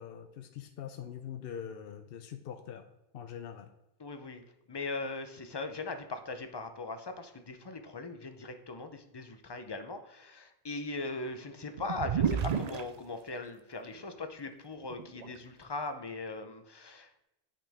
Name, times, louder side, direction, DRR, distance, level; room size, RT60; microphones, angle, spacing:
voice 1, 0.0-2.8 3.1-3.7, left 8 dB, 70° left, 6 dB, 0.8 m, -43 dB
voice 2, 4.0-17.2, left 3 dB, 30° left, 7 dB, 0.6 m, -40 dB
sound 1, 11.8-12.8 14.0-14.1 14.8-15.4, right 7 dB, 50° right, 0.5 m, -31 dB
8.7 x 5.8 x 3.5 m, 0.92 s
omnidirectional pair, 1.0 m